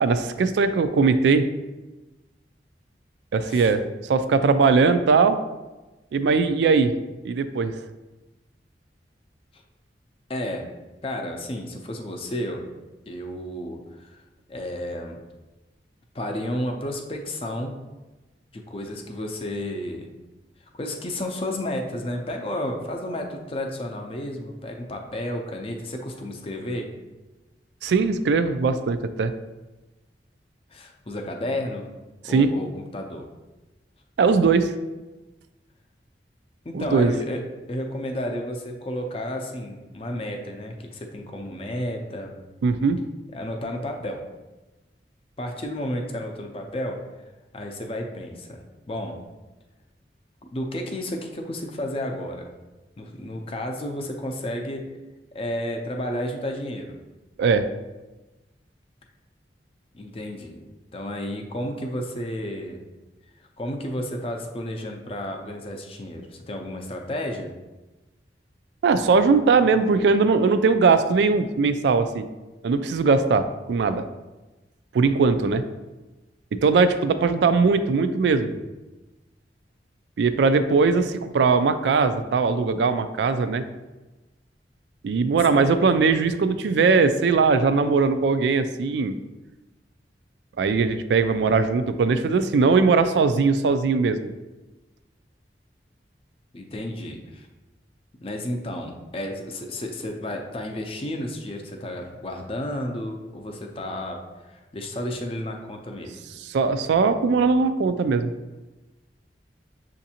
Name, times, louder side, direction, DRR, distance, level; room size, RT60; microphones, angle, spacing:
voice 1, 0.0-1.5 3.3-3.8 4.1-5.4 6.1-6.9 7.2-7.7 27.8-29.3 32.2-32.5 34.2-34.7 36.7-37.1 42.6-43.0 57.4-57.7 68.8-72.2 72.6-74.0 74.9-75.6 76.5-78.5 80.2-83.6 85.0-89.2 90.6-94.3 106.5-108.3, right 4 dB, 75° right, 11 dB, 0.3 m, -20 dB
voice 2, 10.3-10.7 11.0-12.6 13.1-14.2 14.5-15.2 16.1-17.7 18.5-20.1 20.7-26.9 30.7-31.9 32.2-33.3 36.6-37.4 37.7-42.3 43.3-44.2 45.4-47.0 47.5-49.2 50.5-52.5 53.0-54.9 55.3-57.0 59.9-60.6 60.9-62.8 63.6-67.5 85.4-85.8 96.5-97.5 98.2-106.2, left 1 dB, 30° left, 3 dB, 0.5 m, -32 dB
7.0 x 2.6 x 2.8 m, 1.1 s
head